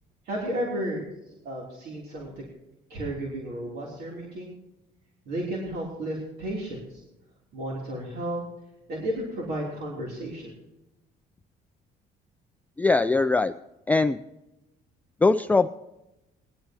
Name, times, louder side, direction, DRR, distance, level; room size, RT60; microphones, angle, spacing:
voice 1, 0.2-2.4 2.9-4.5 5.2-7.0 7.5-8.4 8.9-10.5, right 1 dB, 70° right, -3 dB, 3.4 m, -33 dB
voice 2, 12.8-13.5 13.9-14.2 15.2-15.7, left 3 dB, 10° left, 9 dB, 0.3 m, -21 dB
19.5 x 11.5 x 3.0 m, 0.93 s
cardioid pair, 110°, 17 cm